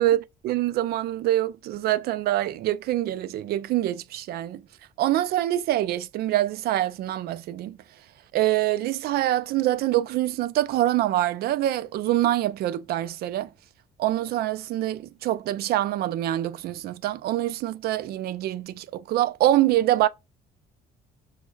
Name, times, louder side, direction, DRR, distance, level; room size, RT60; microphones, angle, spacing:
voice 1, 0.0-4.6 5.0-7.8 8.3-13.5 14.0-20.1, right 14 dB, 65° right, 0.4 m, -25 dB
6.1 x 2.2 x 2.2 m
cardioid pair, 110°, 17 cm